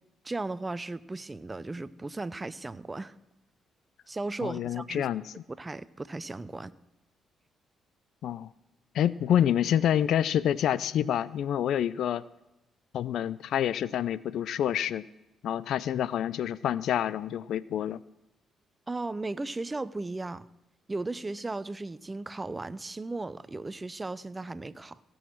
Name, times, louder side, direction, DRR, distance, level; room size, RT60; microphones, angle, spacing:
voice 1, 0.2-3.1 4.1-5.1 5.5-6.7 18.9-20.5 20.9-25.0, right 2 dB, 25° right, 17 dB, 0.6 m, -36 dB
voice 2, 4.4-5.3 8.2-8.5 8.9-12.2 12.9-15.0 15.4-18.0, left 10 dB, 70° left, 20 dB, 0.4 m, -27 dB
17.0 x 6.4 x 7.6 m, 0.93 s
supercardioid pair, 55°, 0 cm